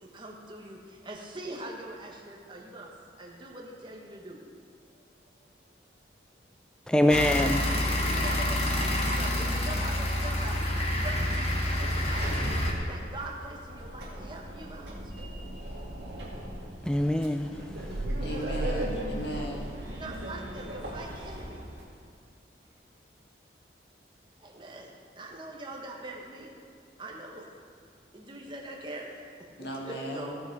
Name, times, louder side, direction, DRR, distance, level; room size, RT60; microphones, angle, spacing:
voice 1, 0.0-2.9 3.2-4.4 8.0-10.6 11.0-12.5 12.8-15.0 19.9-21.6 24.4-26.6 27.0-27.5 28.1-29.1 29.6-30.4, right 2 dB, 25° right, 1.3 m, -42 dB
voice 2, 6.9-8.1 16.8-18.0, left 1 dB, 5° left, 0.3 m, -26 dB
sound 1, 7.1-12.7, left 1 dB, 35° left, 1.2 m, -28 dB
Sliding door, 11.7-21.8, right 1 dB, 75° right, 2.3 m, -37 dB
voice 3, 18.2-19.7 29.6-30.4, equal, 65° left, 2.0 m, -37 dB
16.0 x 6.2 x 4.7 m
head